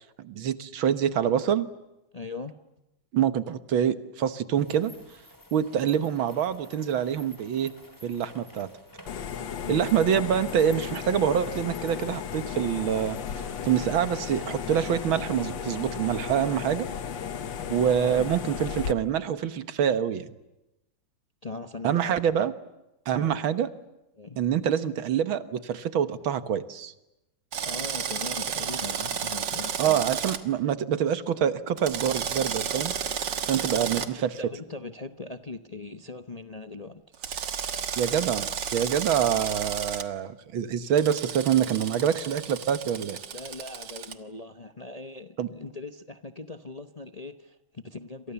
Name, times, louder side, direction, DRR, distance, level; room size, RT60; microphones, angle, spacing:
voice 1, 0.2-1.7 3.1-4.9 5.5-7.7 8.0-8.7 9.7-13.2 13.6-16.9 17.7-20.3 21.8-22.5 23.1-23.7 24.4-26.9 29.8-32.9 33.4-34.4 38.0-43.2 45.4-45.5, right 9 dB, 85° right, 12 dB, 2.1 m, -26 dB
voice 2, 2.1-2.6 9.4-9.9 17.9-18.3 21.4-22.3 23.1-23.4 24.2-24.4 27.6-30.0 33.4-34.1 34.4-37.0 43.3-48.3, left 3 dB, 30° left, 8 dB, 0.7 m, -40 dB
sound 1, 4.6-16.6, equal, 10° left, 2.9 m, -52 dB
sound 2, 9.1-18.9, left 8 dB, 70° left, 1.9 m, -35 dB
Drill, 27.5-30.4 31.8-34.1 37.2-40.0 41.0-44.1, right 7 dB, 65° right, 2.1 m, -32 dB
28.5 x 27.0 x 7.1 m, 0.94 s
omnidirectional pair, 2.1 m